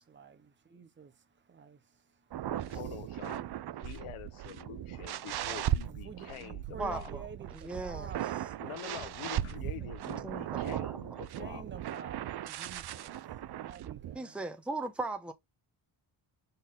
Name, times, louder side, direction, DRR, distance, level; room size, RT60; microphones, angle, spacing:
voice 1, 0.0-2.0 5.9-9.5 11.3-13.1 13.5-14.4, right 5 dB, 25° right, 1.0 m, -50 dB
sound 1, 2.3-14.2, right 12 dB, 55° right, 0.6 m, -37 dB
voice 2, 2.5-3.4 3.8-7.3 8.6-11.6, left 11 dB, 90° left, 1.0 m, -46 dB
voice 3, 6.8-7.2 7.5-8.1 10.2-11.0 14.1-15.3, right 2 dB, ahead, 0.9 m, -38 dB
6.4 x 4.0 x 3.7 m
cardioid pair, 100°, 48 cm